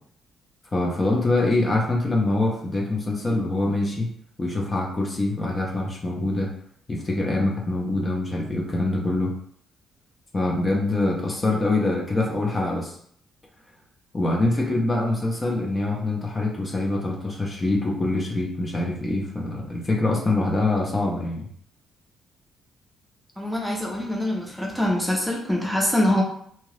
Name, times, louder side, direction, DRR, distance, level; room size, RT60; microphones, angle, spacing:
voice 1, 0.7-4.1 4.4-6.5 6.9-9.3 10.3-13.0 14.1-21.5, left 2 dB, 30° left, -1 dB, 0.7 m, -24 dB
voice 2, 23.4-26.2, left 1 dB, 5° right, -1 dB, 0.7 m, -24 dB
2.8 x 2.4 x 3.2 m, 0.64 s
cardioid pair, 90°, 0 cm